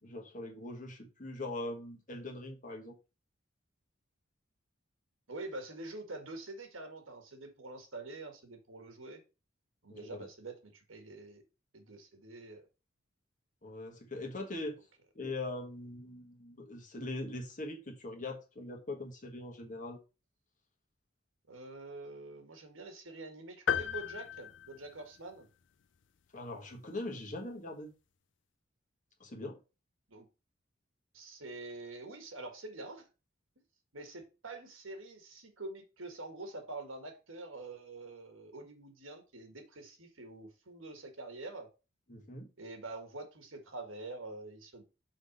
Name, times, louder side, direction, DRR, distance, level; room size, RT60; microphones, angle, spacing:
voice 1, 0.0-3.0 9.9-10.3 13.6-14.8 15.1-20.0 26.3-27.9 29.2-29.6 42.1-42.5, left 2 dB, 40° left, 1.5 m, -41 dB
voice 2, 5.3-9.2 9.8-11.4 11.7-12.6 21.5-25.5 30.1-30.3 31.1-33.1 33.9-41.7 42.6-44.8, right 2 dB, 80° right, 1.7 m, -46 dB
sound 1, 23.7-25.5, left 8 dB, 60° left, 0.5 m, -35 dB
6.0 x 4.1 x 5.2 m
head